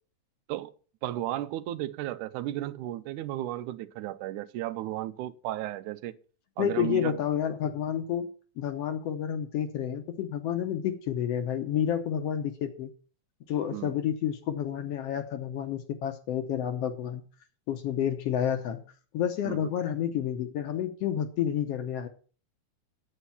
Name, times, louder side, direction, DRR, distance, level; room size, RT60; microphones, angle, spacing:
voice 1, 1.0-6.2 6.6-7.1 13.7-13.9 19.5-19.7, right 14 dB, 90° right, 2.1 m, -34 dB
voice 2, 6.6-8.3 8.6-12.9 13.5-17.2 17.7-18.8 19.1-22.1, left 9 dB, 65° left, 1.7 m, -30 dB
9.0 x 8.2 x 5.5 m
omnidirectional pair, 3.4 m